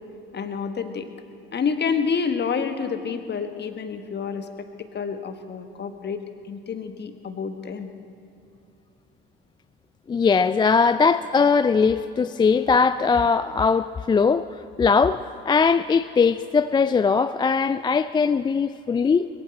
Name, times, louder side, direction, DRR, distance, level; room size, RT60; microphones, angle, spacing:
voice 1, 0.3-1.1 1.5-4.5 4.9-6.2 6.5-7.9, left 6 dB, 35° left, 8 dB, 1.4 m, -28 dB
voice 2, 10.1-14.5 14.8-19.3, left 5 dB, 15° left, 13 dB, 0.3 m, -20 dB
21.5 x 14.5 x 4.3 m, 2.6 s
figure-of-eight pair, 55°, 29 cm